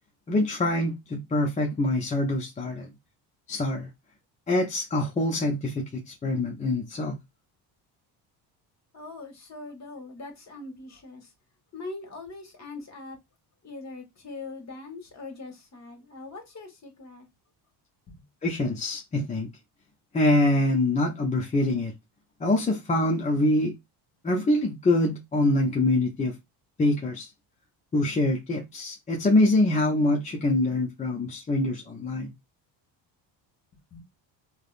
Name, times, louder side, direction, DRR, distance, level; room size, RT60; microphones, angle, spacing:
voice 1, 0.3-2.9 3.5-3.9 4.5-7.2 18.4-19.5 20.1-21.9 22.4-23.7 24.2-26.4 26.8-27.3 27.9-32.3, left 1 dB, 15° left, 0.4 m, -25 dB
voice 2, 8.9-11.3 11.7-13.2 13.6-17.3 18.1-18.2 33.9-34.0, left 3 dB, 35° left, 1.2 m, -41 dB
3.4 x 2.0 x 2.4 m
cardioid pair, 95°, 47 cm